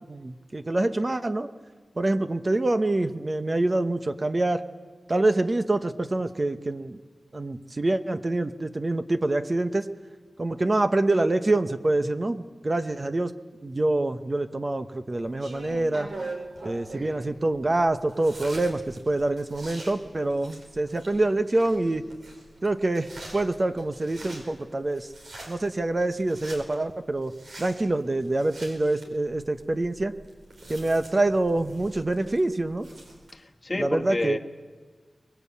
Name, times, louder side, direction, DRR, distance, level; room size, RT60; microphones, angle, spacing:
voice 1, 0.1-1.5 2.0-4.6 5.1-7.0 7.3-9.9 10.4-13.3 13.6-16.1 16.6-22.0 22.6-25.1 25.5-27.3 27.6-30.1 30.7-32.9 33.8-34.4, right 2 dB, 35° right, 9 dB, 0.9 m, -26 dB
sound 1, 15.1-33.3, right 2 dB, 85° right, 4.7 m, -44 dB
voice 2, 31.2-31.6 33.3-34.4, left 2 dB, 30° left, 5 dB, 1.3 m, -31 dB
24.0 x 20.0 x 8.5 m, 1.4 s
wide cardioid pair, 90°, 0 cm